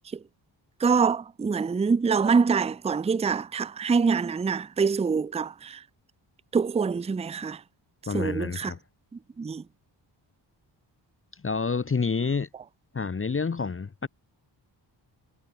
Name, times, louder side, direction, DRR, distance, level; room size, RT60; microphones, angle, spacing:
voice 1, 0.8-5.8 6.5-7.6 8.1-8.7 9.4-9.6, right 5 dB, 15° right, 0.4 m, -25 dB
voice 2, 8.1-8.8 11.3-12.5 12.9-14.1, left 5 dB, 25° left, 1.0 m, -28 dB
cardioid pair, 80°, 46 cm